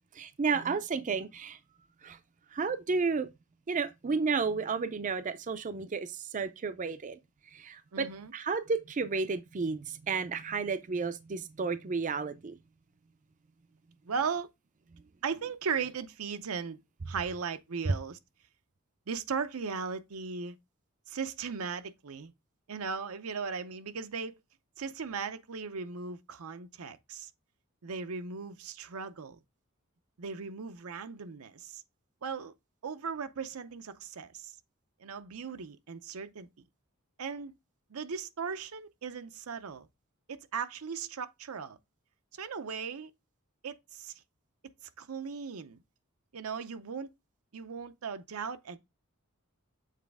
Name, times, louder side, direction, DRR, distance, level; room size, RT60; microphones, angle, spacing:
voice 1, 0.2-1.6 2.0-2.2 2.5-3.3 3.7-7.2 7.5-8.1 8.3-12.5 17.9-18.0, right 4 dB, 35° right, 0.4 m, -32 dB
voice 2, 7.9-8.3 14.1-14.5 15.2-16.8 17.1-18.2 19.1-20.6 21.1-22.3 22.7-24.4 24.8-27.3 27.8-29.4 30.2-31.8 32.2-32.5 32.8-34.5 35.0-36.5 37.2-37.5 37.9-39.9 40.3-41.8 42.4-43.1 43.6-44.1 45.0-45.8 46.3-47.1 47.5-48.8, right 5 dB, 85° right, 0.6 m, -37 dB
7.4 x 4.0 x 3.4 m
head